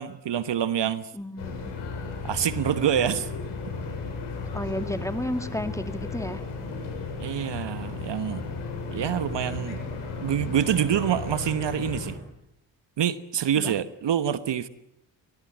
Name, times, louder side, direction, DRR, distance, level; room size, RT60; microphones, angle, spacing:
voice 1, 0.0-1.1 2.2-3.3 7.2-8.4 8.9-9.8 10.2-12.2 13.0-14.7, right 9 dB, 55° right, 14 dB, 1.3 m, -26 dB
voice 2, 1.1-1.7 4.5-6.4 13.6-13.7, left 1 dB, 5° left, 9 dB, 2.1 m, -32 dB
sound 1, 1.4-12.1, left 4 dB, 80° left, 6.9 m, -34 dB
23.0 x 19.5 x 9.0 m, 0.82 s
hypercardioid pair, 45°, 50 cm